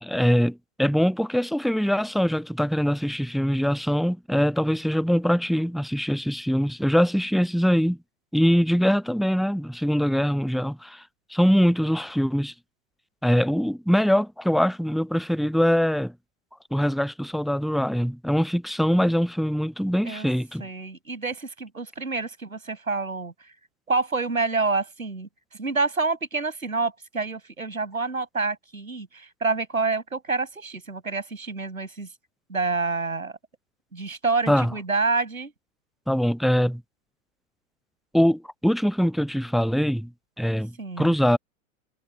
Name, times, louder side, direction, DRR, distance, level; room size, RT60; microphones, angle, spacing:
voice 1, 0.0-8.0 8.3-11.0 11.3-12.5 13.2-16.1 16.7-20.6 34.5-34.7 36.1-36.8 38.1-40.1 40.4-41.4, equal, ahead, 0.4 m, -23 dB
voice 2, 20.6-23.5 23.9-32.1 32.5-33.3 33.9-35.5 40.8-41.1, right 4 dB, 80° right, 7.6 m, -28 dB
figure-of-eight pair, 95°, 41 cm